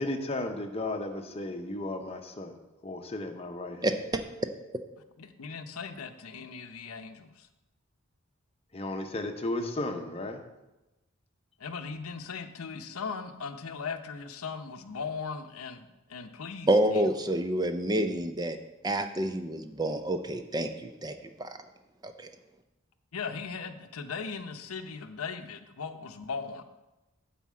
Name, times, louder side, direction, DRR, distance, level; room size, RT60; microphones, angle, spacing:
voice 1, 0.0-2.5 2.8-3.9 8.7-10.4, left 2 dB, 25° left, 5 dB, 0.8 m, -34 dB
voice 2, 3.8-4.2 16.7-18.6 18.8-21.6 22.0-22.3, right 1 dB, 20° right, 7 dB, 0.4 m, -28 dB
voice 3, 5.2-7.5 11.6-17.0 23.1-26.6, left 5 dB, 85° left, 8 dB, 0.7 m, -38 dB
9.3 x 4.2 x 7.4 m, 1.0 s
head